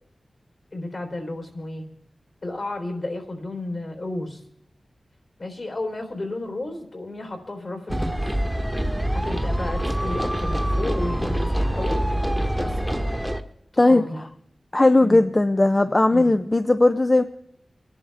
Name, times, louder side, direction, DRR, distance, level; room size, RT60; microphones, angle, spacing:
voice 1, 0.7-1.8 2.4-4.4 5.4-8.2 9.1-12.0 12.6-12.7 13.7-14.2 15.0-15.3 16.1-16.4, left 2 dB, 55° left, 4 dB, 3.7 m, -32 dB
sound 1, 7.9-13.4, equal, 5° right, 1.2 m, -25 dB
voice 2, 14.7-17.2, left 2 dB, 30° left, 8 dB, 0.6 m, -17 dB
26.0 x 11.0 x 3.4 m, 0.75 s
wide cardioid pair, 80°, 0 cm